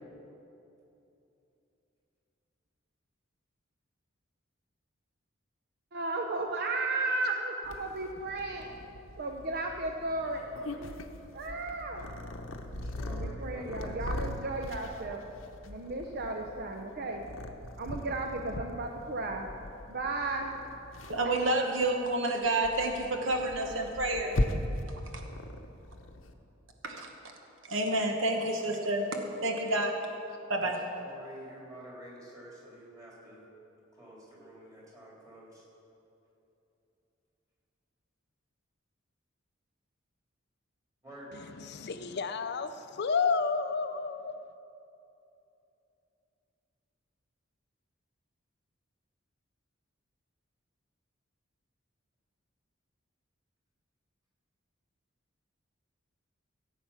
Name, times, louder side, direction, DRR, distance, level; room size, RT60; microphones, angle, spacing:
voice 1, 5.9-11.0 11.3-12.1 13.1-15.2 15.6-17.2 17.8-19.5 19.9-20.5 21.2-21.4, right 2 dB, 55° right, 3 dB, 0.7 m, -34 dB
Purr, 7.6-26.3, left 1 dB, 75° left, 0.9 m, -40 dB
voice 2, 12.6-14.2 30.6-30.7 31.0-33.4 33.9-35.6 41.0-41.3, right 1 dB, 20° right, -5 dB, 3.6 m, -49 dB
voice 3, 21.1-24.4 26.8-27.1 27.7-29.1 29.4-30.0 30.5-30.7, right 2 dB, 70° right, 3 dB, 1.2 m, -29 dB
voice 4, 41.6-44.3, left 5 dB, 55° left, 10 dB, 0.5 m, -31 dB
16.0 x 8.3 x 5.7 m, 2.8 s
head